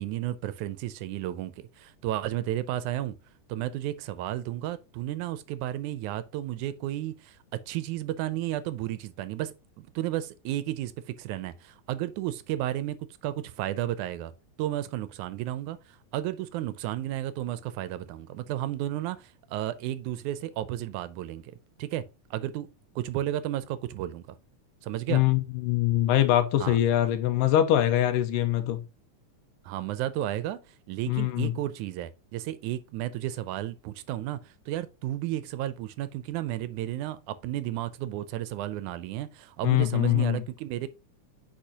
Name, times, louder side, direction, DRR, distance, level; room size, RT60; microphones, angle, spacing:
voice 1, 0.0-3.2 3.5-7.4 7.7-13.0 13.2-14.3 14.6-21.5 21.8-22.1 22.3-22.7 23.0-24.4 24.8-25.2 26.6-26.8 29.6-40.9, right 13 dB, 80° right, 1.9 m, -33 dB
voice 2, 25.1-28.8 31.1-31.5 39.6-40.4, left 12 dB, 85° left, 2.4 m, -23 dB
8.9 x 4.9 x 2.8 m
omnidirectional pair, 3.7 m